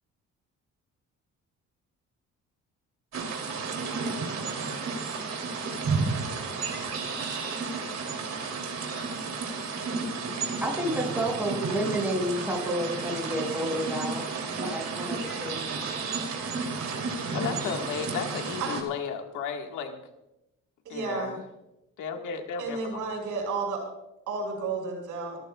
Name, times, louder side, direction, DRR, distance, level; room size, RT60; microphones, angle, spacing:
sound 1, 3.1-18.8, right 4 dB, 60° right, 3.1 m, -32 dB
voice 1, 10.6-15.7, equal, 5° right, -2 dB, 6.5 m, -30 dB
voice 2, 17.3-20.0 20.9-21.4 22.0-23.0, left 6 dB, 85° left, 4 dB, 1.8 m, -34 dB
voice 3, 20.8-21.3 22.6-23.8 24.3-25.4, right 4 dB, 85° right, 1 dB, 6.1 m, -32 dB
27.0 x 13.5 x 2.4 m, 0.90 s
cardioid pair, 90°, 30 cm